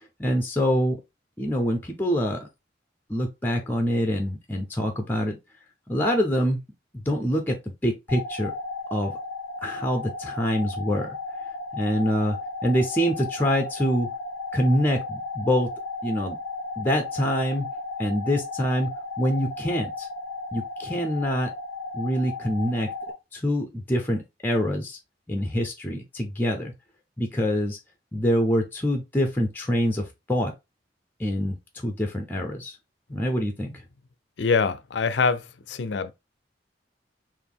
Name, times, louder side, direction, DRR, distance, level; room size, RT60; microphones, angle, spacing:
voice 1, 0.2-1.0 1.4-2.5 3.1-5.4 5.9-6.6 7.1-8.5 8.9-9.1 9.6-11.1 11.7-12.4 12.6-14.1 14.5-15.7 16.0-16.4 16.8-17.7 18.0-18.9 19.2-20.1 20.5-21.5 21.9-22.9 23.3-25.0 25.3-26.7 27.2-27.8 28.1-30.5 31.2-32.8 33.1-33.7, equal, 10° left, 0.6 m, -25 dB
sound 1, 8.1-23.1, left 3 dB, 10° right, 1.5 m, -35 dB
voice 2, 34.4-36.1, left 4 dB, 70° left, 0.5 m, -24 dB
4.1 x 2.6 x 3.4 m
head